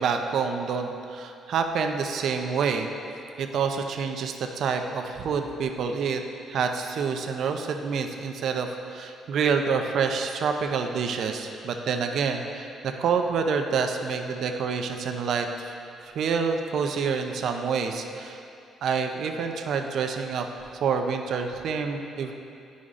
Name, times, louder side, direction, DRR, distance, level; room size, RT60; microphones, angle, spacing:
voice 1, 0.0-2.9 3.4-6.2 6.5-15.7 16.0-18.4 18.8-20.5 20.8-22.3, right 5 dB, 60° right, 4 dB, 0.5 m, -27 dB
11.0 x 5.1 x 2.5 m, 2.6 s
cardioid pair, 125°, 0 cm